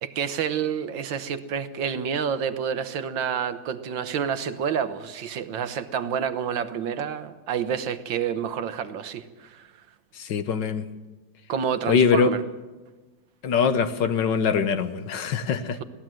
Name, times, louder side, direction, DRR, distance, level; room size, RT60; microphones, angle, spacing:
voice 1, 0.0-9.7 11.5-12.4, right 7 dB, 75° right, 11 dB, 1.7 m, -28 dB
voice 2, 10.2-10.8 11.9-12.3 13.4-15.8, left 6 dB, 65° left, 10 dB, 1.6 m, -23 dB
21.5 x 16.5 x 7.7 m, 1.2 s
omnidirectional pair, 2.1 m